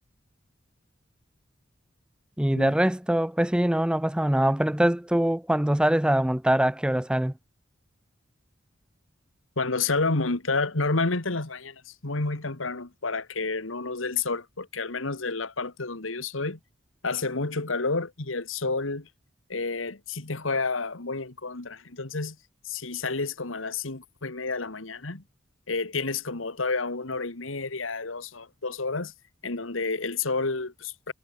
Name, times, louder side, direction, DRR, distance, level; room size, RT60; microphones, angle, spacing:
voice 1, 2.4-7.3, right 1 dB, 5° right, 0.5 m, -23 dB
voice 2, 9.6-16.6 17.0-19.1 19.5-22.4 22.6-25.2 25.7-29.1 29.4-31.1, left 3 dB, 85° left, 2.0 m, -30 dB
head